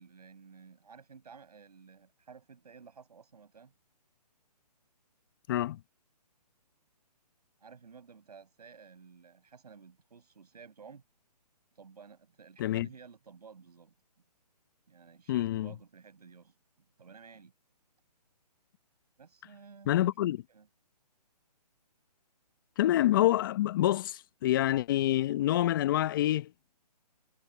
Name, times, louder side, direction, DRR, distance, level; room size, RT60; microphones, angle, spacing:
voice 1, 0.0-3.7 7.6-11.0 11.8-13.9 14.9-17.5 19.2-20.1 20.5-20.7, right 5 dB, 70° right, 7.8 m, -54 dB
voice 2, 5.5-5.8 12.6-12.9 15.3-15.7 19.9-20.4 22.8-26.5, left 14 dB, 30° left, 0.9 m, -27 dB
hypercardioid pair, 145°, 21 cm